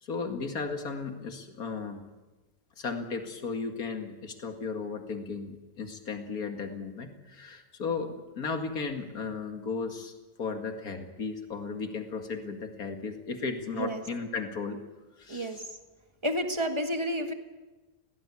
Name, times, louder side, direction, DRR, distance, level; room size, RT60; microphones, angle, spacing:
voice 1, 0.0-2.1 2.8-10.1 10.4-14.8 15.2-15.6, left 4 dB, 60° left, 5 dB, 2.5 m, -35 dB
voice 2, 15.3-15.6 16.2-17.3, equal, 15° right, 5 dB, 1.8 m, -30 dB
21.5 x 18.0 x 8.4 m, 1.2 s
omnidirectional pair, 1.8 m